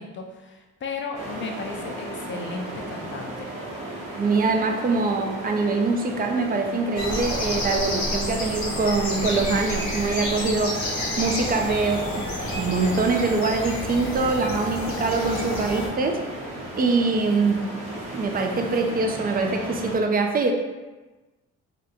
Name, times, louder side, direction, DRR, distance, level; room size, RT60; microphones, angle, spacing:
voice 1, 0.0-3.5, left 4 dB, 40° left, 3 dB, 0.5 m, -35 dB
sound 1, 1.1-20.0, right 1 dB, 85° right, 1.0 m, -36 dB
voice 2, 4.1-10.8 11.2-16.2 16.8-17.6 18.1-20.5, right 3 dB, 30° right, 4 dB, 0.4 m, -24 dB
sound 2, 7.0-15.9, left 1 dB, 70° left, 1.0 m, -30 dB
2.8 x 2.2 x 3.7 m, 1.2 s
cardioid pair, 90°, 30 cm